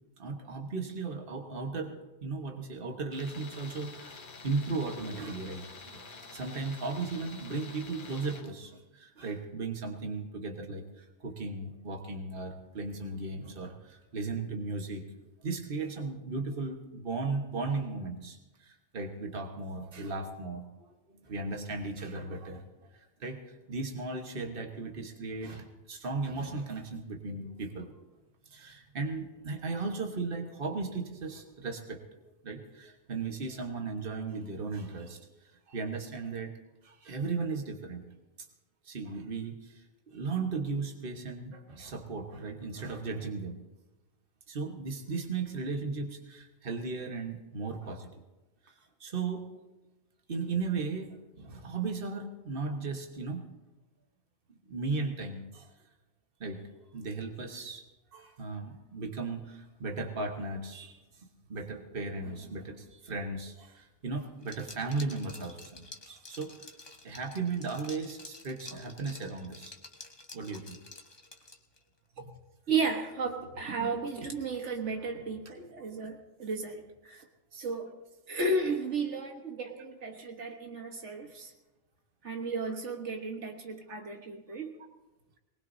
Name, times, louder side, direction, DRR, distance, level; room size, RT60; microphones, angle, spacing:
voice 1, 0.2-4.2 4.4-5.6 5.9-15.0 15.4-22.6 22.9-28.0 28.5-32.0 32.4-35.2 35.7-36.5 36.8-38.0 38.8-43.5 44.5-48.1 49.0-49.4 50.3-53.4 54.7-55.7 56.4-56.6 56.9-57.8 58.1-66.7 67.0-69.8 70.3-70.8 77.1-77.2, right 4 dB, 50° right, 3 dB, 1.6 m, -36 dB
Tools, 3.1-8.5, left 4 dB, 50° left, 1.0 m, -48 dB
Liquid, 64.4-71.8, left 2 dB, 25° left, 1.0 m, -50 dB
voice 2, 72.7-77.3 77.5-77.9 78.3-81.5 82.2-84.7, right 3 dB, 85° right, 3 dB, 1.7 m, -34 dB
22.0 x 19.5 x 2.7 m, 1.1 s
omnidirectional pair, 1.2 m